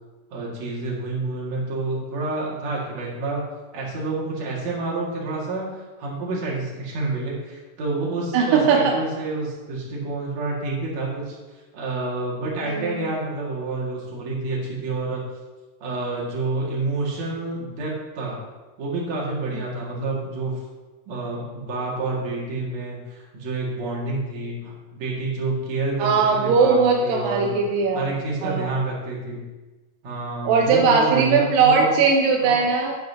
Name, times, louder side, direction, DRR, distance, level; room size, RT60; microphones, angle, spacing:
voice 1, 0.3-3.4 3.7-11.4 11.7-15.2 15.8-18.4 18.8-20.6 21.1-27.6 27.9-29.5 30.0-32.0 32.4-32.6, right 3 dB, 55° right, -4 dB, 3.0 m, -28 dB
voice 2, 8.3-9.0 12.7-13.0 19.5-19.6 26.0-28.1 28.4-28.7 30.5-33.0, right 5 dB, 85° right, 2 dB, 2.3 m, -19 dB
10.5 x 9.5 x 2.8 m, 1.2 s
omnidirectional pair, 4.0 m